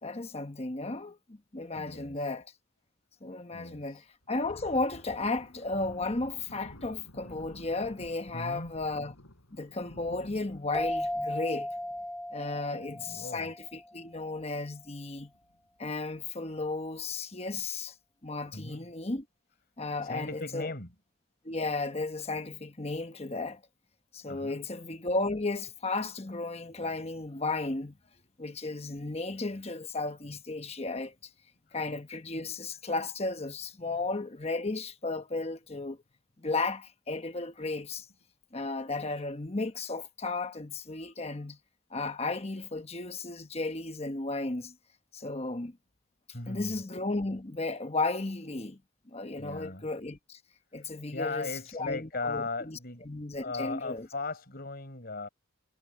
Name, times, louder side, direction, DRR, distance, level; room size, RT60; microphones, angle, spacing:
voice 1, 0.0-2.5 3.2-9.2 9.5-11.7 12.3-15.3 15.8-17.9 18.2-19.2 19.8-20.7 21.4-23.6 24.1-28.0 28.4-31.1 31.7-36.0 36.4-38.1 38.5-41.6 41.9-44.7 45.1-45.8 46.5-48.8 49.1-50.4 50.7-54.1, left 3 dB, 30° left, 1.2 m, -34 dB
voice 2, 1.8-2.3 3.5-4.0 8.3-8.7 12.7-13.5 18.5-18.8 20.0-20.9 24.3-24.6 41.0-41.1 46.3-46.8 49.4-49.9 50.8-53.0 53.4-55.3, left 3 dB, 45° left, 4.7 m, -38 dB
Thunder, 4.2-13.3 13.6-13.8 14.2-14.5 15.1-15.6, left 1 dB, 75° left, 4.4 m, -52 dB
sound 1, 10.7-14.0, left 1 dB, 5° left, 2.1 m, -36 dB
head